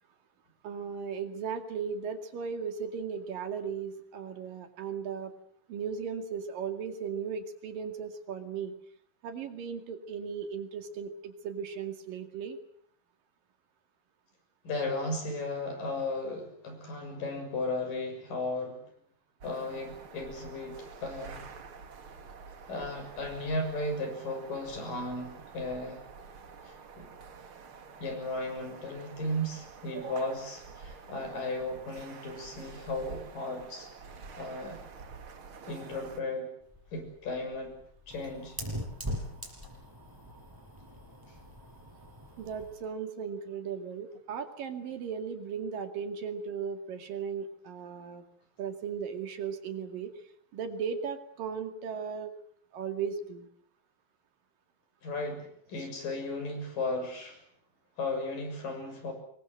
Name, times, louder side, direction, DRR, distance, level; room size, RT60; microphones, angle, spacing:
voice 1, 0.6-5.3 5.7-8.7 9.2-12.6 30.0-30.3 42.4-48.2 48.6-50.1 50.5-52.3 52.7-53.5 55.8-55.9, right 6 dB, 70° right, 7 dB, 3.9 m, -36 dB
voice 2, 14.6-18.8 19.4-21.4 22.7-26.0 26.6-27.1 28.0-33.9 34.4-34.8 35.7-36.5 36.9-37.7 38.1-38.6 55.0-57.4 58.0-59.1, left 2 dB, 65° left, 5 dB, 8.3 m, -35 dB
sound 1, 19.4-36.2, right 5 dB, 40° right, 2.5 m, -48 dB
Fire, 36.6-42.8, equal, 5° right, 6.3 m, -42 dB
26.5 x 22.0 x 8.0 m, 0.64 s
omnidirectional pair, 4.2 m